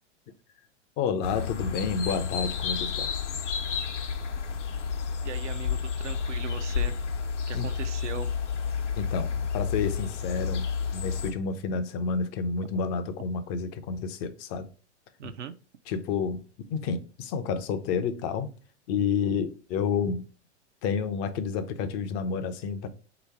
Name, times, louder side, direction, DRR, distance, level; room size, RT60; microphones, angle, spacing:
voice 1, 1.0-3.1 7.5-7.7 9.0-14.7 15.9-16.4 16.7-18.5 18.9-20.2 20.8-22.9, left 5 dB, 30° left, 0.4 m, -30 dB
sound 1, 1.2-11.3, left 6 dB, 80° left, 0.8 m, -30 dB
voice 2, 5.2-7.0 7.5-8.3 15.2-15.5, right 7 dB, 85° right, 0.5 m, -39 dB
3.1 x 2.9 x 4.5 m
hypercardioid pair, 105°, 35 cm